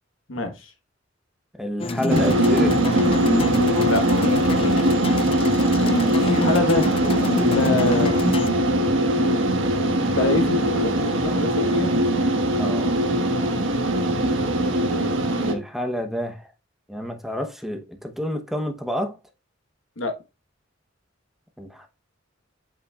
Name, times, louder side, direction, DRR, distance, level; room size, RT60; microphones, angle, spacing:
voice 1, 0.3-0.6 3.8-4.0 6.3-7.1 7.5-8.2 10.1-11.9 20.0-20.1, left 2 dB, 80° left, 1.4 m, -25 dB
voice 2, 1.6-3.0 5.9-6.3 12.6-12.9 15.4-16.5 16.9-19.2 21.6-21.9, equal, ahead, 1.0 m, -29 dB
sound 1, 1.8-8.5, left 3 dB, 30° left, 0.3 m, -27 dB
sound 2, 2.1-15.5, right 1 dB, 70° right, 1.4 m, -21 dB
8.0 x 5.8 x 2.4 m
head